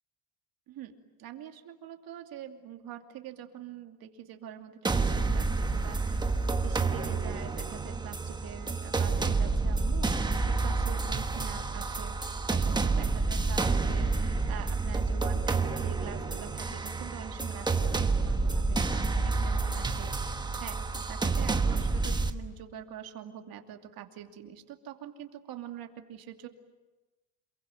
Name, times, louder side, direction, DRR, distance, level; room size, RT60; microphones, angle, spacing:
voice 1, 1.2-6.2 6.5-12.1 12.5-20.3 20.6-26.5, right 10 dB, 45° right, 5 dB, 2.8 m, -45 dB
sound 1, 4.8-22.3, right 3 dB, 10° right, 1.2 m, -29 dB
28.0 x 22.5 x 9.2 m, 1.1 s
cardioid pair, 155°, 47 cm